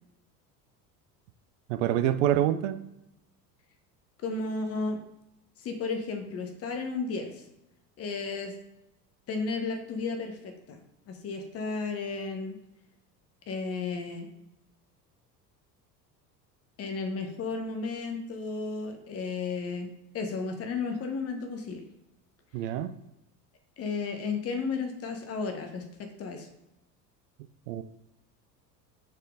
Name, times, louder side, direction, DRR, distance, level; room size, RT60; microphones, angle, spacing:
voice 1, 1.7-2.8 22.5-22.9 27.7-27.8, right 11 dB, 50° right, 10 dB, 0.5 m, -26 dB
voice 2, 4.2-5.0 5.6-7.4 8.0-8.5 9.3-12.6 13.5-14.3 16.8-21.8 23.8-26.5, left 4 dB, 30° left, 5 dB, 0.7 m, -33 dB
4.1 x 3.6 x 3.6 m, 0.88 s
figure-of-eight pair, 70°, 50 cm